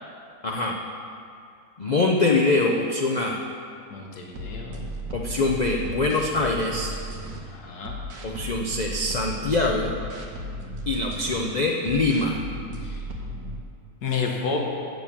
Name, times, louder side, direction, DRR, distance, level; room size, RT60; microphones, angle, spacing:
voice 1, 0.4-0.7 1.8-3.4 5.1-6.9 8.2-9.9 10.9-12.4, left 2 dB, 65° left, 0 dB, 0.4 m, -23 dB
voice 2, 3.9-4.9 7.5-8.0 12.8-12.9 14.0-14.6, left 5 dB, 85° left, 0 dB, 1.6 m, -30 dB
sound 1, 4.3-7.4 7.8-11.4 11.8-13.6, equal, 80° right, 1.5 m, -35 dB
7.9 x 6.7 x 7.2 m, 2.4 s
omnidirectional pair, 1.6 m